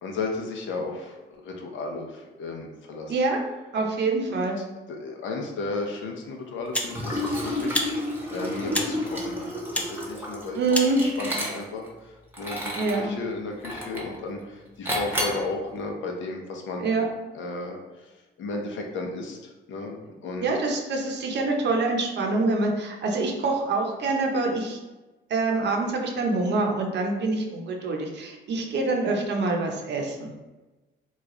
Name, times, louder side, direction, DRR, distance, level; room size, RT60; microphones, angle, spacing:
voice 1, 0.0-3.1 4.9-10.6 10.9-17.1 17.3-17.8 18.4-19.4 19.7-20.5, left 3 dB, 70° left, 1 dB, 0.7 m, -34 dB
voice 2, 3.1-3.4 3.7-4.6 10.5-11.0 12.8-13.2 16.8-17.1 20.4-24.8 25.3-30.3, right 3 dB, 60° right, 1 dB, 0.8 m, -25 dB
sound 1, 5.8-5.9 6.7-7.0 7.7-7.9 8.7-8.9 9.7-9.9 10.7-10.9, left 1 dB, 5° left, 0.5 m, -28 dB
Liquid, 6.8-11.9 12.3-13.1 13.6-14.2 14.9-15.5, left 1 dB, 10° right, 0.9 m, -31 dB
3.0 x 2.4 x 3.7 m, 1.1 s
cardioid pair, 90°, 20 cm